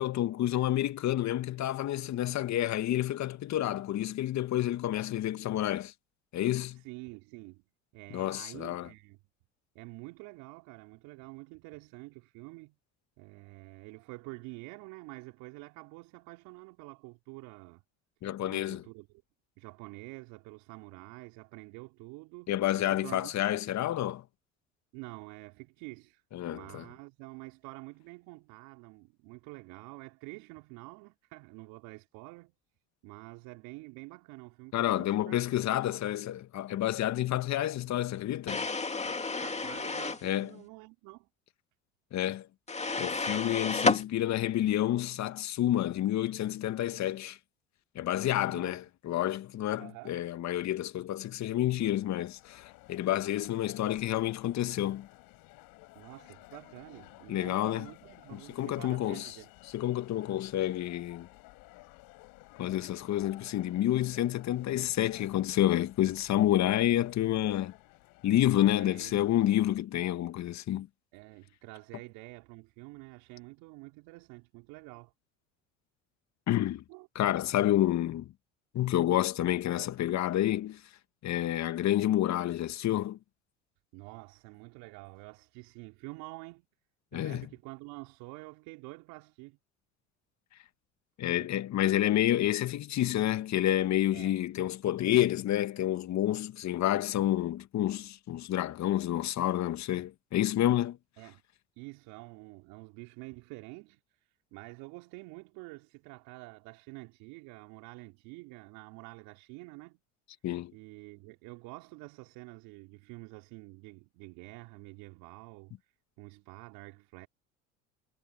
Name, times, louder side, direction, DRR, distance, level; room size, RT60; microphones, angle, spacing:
voice 1, 0.0-5.9 6.3-6.8 8.1-8.9 18.2-18.8 22.5-24.2 26.3-26.8 34.7-38.7 40.2-40.5 42.1-42.5 43.0-47.4 48.0-55.1 57.3-57.9 58.3-59.3 59.7-61.3 62.6-67.7 68.2-70.9 76.5-76.8 77.2-78.3 78.7-80.8 81.2-83.2 87.1-87.5 91.2-101.0 110.4-110.7, left 13 dB, 45° left, 2.0 m, -29 dB
voice 2, 6.7-7.7 7.9-9.2 9.7-12.8 13.2-17.8 18.5-19.2 19.6-23.7 24.9-32.5 33.0-35.6 39.0-41.3 48.4-48.8 49.8-50.2 55.9-59.5 68.7-69.2 71.1-75.1 76.9-77.1 83.9-86.7 87.1-89.6 91.3-91.5 94.1-94.3 101.2-101.4 101.8-110.0 110.7-117.3, right 26 dB, 65° right, 4.1 m, -48 dB
sound 1, 38.5-40.3 42.7-44.0, left 4 dB, 20° left, 2.4 m, -31 dB
sound 2, 52.0-69.8, left 23 dB, 65° left, 7.7 m, -55 dB
hypercardioid pair, 75°, 37 cm